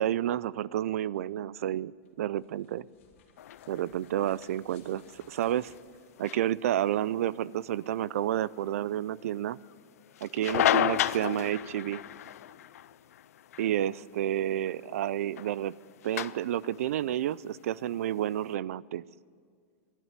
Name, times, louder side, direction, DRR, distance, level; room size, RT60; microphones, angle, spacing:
voice 1, 0.0-2.8 3.7-5.7 6.2-9.6 10.2-12.0 13.6-15.7 16.0-19.0, right 12 dB, 70° right, 21 dB, 0.4 m, -30 dB
sound 1, 1.9-6.9, left 6 dB, 60° left, 2.3 m, -64 dB
sound 2, 3.4-18.5, left 11 dB, 80° left, 0.5 m, -35 dB
12.5 x 9.2 x 8.9 m, 2.2 s
supercardioid pair, 165°, 8 cm